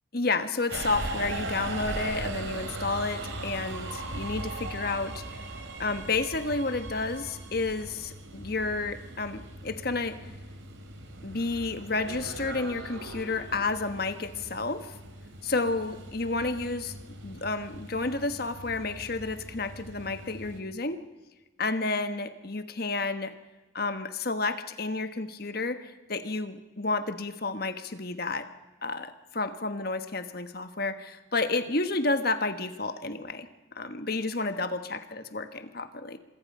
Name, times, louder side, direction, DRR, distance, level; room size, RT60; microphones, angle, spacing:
voice 1, 0.1-5.4 5.8-10.2 11.2-14.9 15.4-16.9 17.2-21.0 21.6-23.3 23.7-28.5 28.8-33.5 33.7-35.0 35.3-36.2, left 3 dB, 50° left, 9 dB, 1.3 m, -31 dB
Subway metro underground, 0.7-20.6, right 2 dB, 70° right, 2.9 m, -39 dB
26.0 x 23.0 x 5.6 m, 1.2 s
head